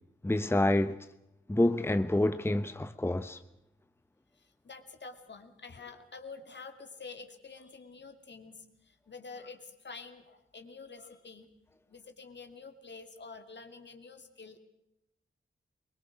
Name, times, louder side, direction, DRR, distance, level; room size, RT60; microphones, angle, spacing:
voice 1, 0.2-1.0 1.5-3.4, left 1 dB, 10° left, 0.9 m, -27 dB
voice 2, 4.4-11.5 11.9-14.6, left 4 dB, 60° left, 2.5 m, -48 dB
23.0 x 21.0 x 6.1 m
cardioid pair, 45°, 20 cm